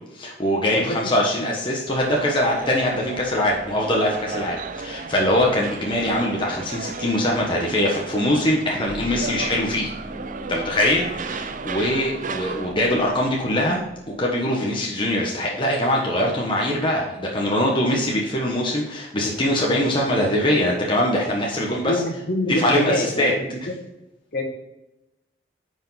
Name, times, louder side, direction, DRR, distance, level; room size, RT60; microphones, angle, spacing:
voice 1, 0.1-9.9 10.5-13.8 14.1-21.9 22.5-23.3, left 1 dB, 30° left, -2 dB, 1.2 m, -22 dB
sound 1, 1.9-12.7, right 4 dB, 45° right, 0.5 m, -34 dB
sound 2, 8.8-14.3, right 1 dB, 10° right, 2.3 m, -40 dB
voice 2, 21.7-23.7 24.3-24.4, left 1 dB, 55° left, 1 dB, 1.8 m, -26 dB
9.6 x 5.1 x 4.0 m, 0.96 s
head